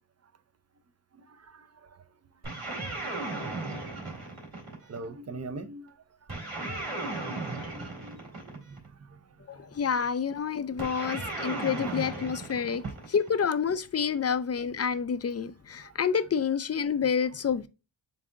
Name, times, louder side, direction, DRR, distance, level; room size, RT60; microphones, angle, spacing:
voice 1, 1.3-2.0 3.0-3.1 4.0-4.3 4.8-6.0 7.0-7.1 7.5-8.8 9.1-9.2 9.5-10.1 10.9-11.2 11.9-12.0 12.8-12.9 14.3-14.4 15.8-15.9, right 3 dB, 35° right, 0.5 m, -44 dB
sound 1, 2.4-5.0 6.3-8.9 10.8-13.4, right 2 dB, 55° right, 2.3 m, -36 dB
voice 2, 9.5-12.8 13.1-17.7, left 6 dB, 35° left, 0.4 m, -28 dB
7.2 x 2.6 x 2.5 m
wide cardioid pair, 75°, 44 cm